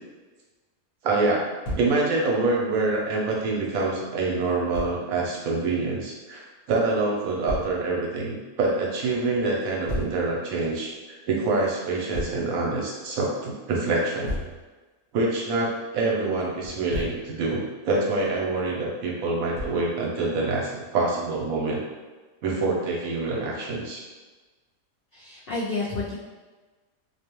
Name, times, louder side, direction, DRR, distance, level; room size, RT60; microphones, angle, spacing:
voice 1, 1.0-1.5 1.8-10.9 11.3-14.3 15.1-21.8 22.4-24.0, right 3 dB, 75° right, -3 dB, 1.0 m, -26 dB
Thump thud, 1.6-1.9 4.7-4.9 7.5-7.7 9.9-10.2 12.1-12.4 14.3-14.6 16.6-17.2 19.6-19.9, equal, 50° left, 0.8 m, -32 dB
voice 2, 25.1-26.1, left 3 dB, 75° left, -8 dB, 0.5 m, -30 dB
2.5 x 2.2 x 2.9 m, 1.3 s
omnidirectional pair, 1.5 m